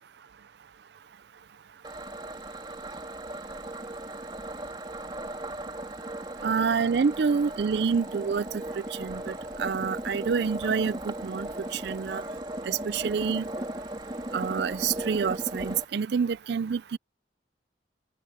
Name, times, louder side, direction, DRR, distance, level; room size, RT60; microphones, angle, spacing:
sound 1, 1.8-15.9, right 1 dB, 25° right, 3.4 m, -37 dB
voice 1, 6.4-8.4 8.8-9.3 9.6-12.2 12.7-13.4 14.3-17.0, right 6 dB, 60° right, 0.4 m, -27 dB
head